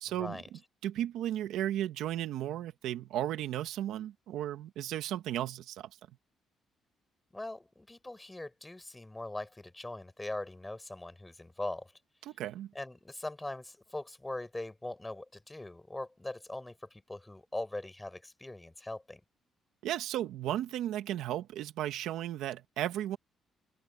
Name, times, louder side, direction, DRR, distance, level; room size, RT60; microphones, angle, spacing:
voice 1, 0.0-5.9 12.2-12.7 19.8-23.2, right 12 dB, 85° right, 1.6 m, -35 dB
voice 2, 7.3-11.9 12.7-19.2, left 2 dB, 15° left, 6.6 m, -41 dB
open air
cardioid pair, 90°, 0 cm